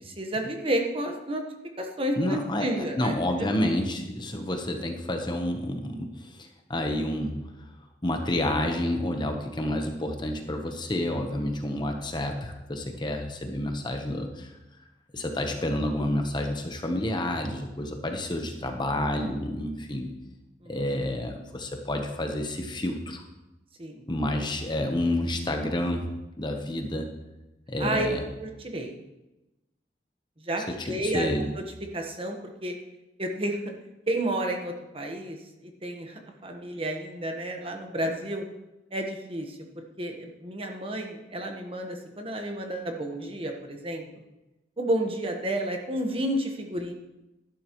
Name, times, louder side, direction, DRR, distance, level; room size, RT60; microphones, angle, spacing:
voice 1, 0.0-1.4 1.8-3.1 20.6-20.7 23.8-24.0 27.8-28.1 28.4-28.9 30.4-31.3 31.6-31.7 31.9-32.7 33.2-33.6 34.1-35.4 35.6-38.4 38.9-44.0 44.8-46.9, right 1 dB, 30° right, 3 dB, 1.3 m, -31 dB
voice 2, 2.2-7.4 8.0-14.5 15.1-20.1 20.7-23.2 24.1-26.1 26.4-27.1 27.7-28.2 30.7-31.5, left 1 dB, 25° left, 4 dB, 1.0 m, -29 dB
12.0 x 11.0 x 3.1 m, 1.0 s
head